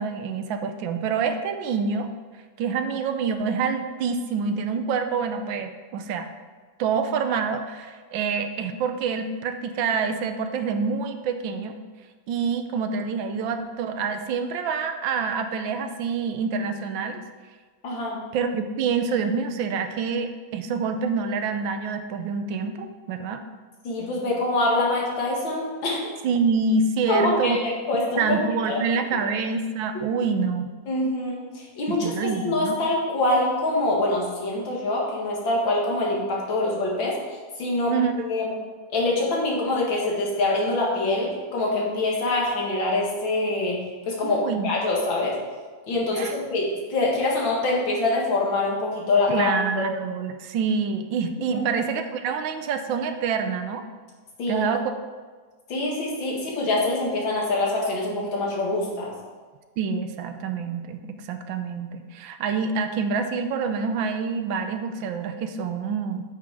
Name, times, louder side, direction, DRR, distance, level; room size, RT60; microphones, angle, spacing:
voice 1, 0.0-2.1 2.6-6.3 6.8-11.8 12.3-17.2 18.3-23.4 26.2-27.6 28.2-30.7 31.9-32.8 37.9-38.1 44.2-44.7 46.1-46.4 49.3-53.9 54.5-54.9 59.8-66.2, right 5 dB, 80° right, 8 dB, 1.4 m, -27 dB
voice 2, 17.8-18.2 23.8-26.1 27.1-28.4 28.7-28.8 30.9-37.2 37.6-37.9 38.3-38.5 38.9-43.8 44.1-45.4 45.9-49.8 51.5-51.6 54.4-54.7 55.7-59.1, left 2 dB, 75° left, -3 dB, 2.5 m, -25 dB
8.5 x 6.2 x 4.7 m, 1.4 s
omnidirectional pair, 2.2 m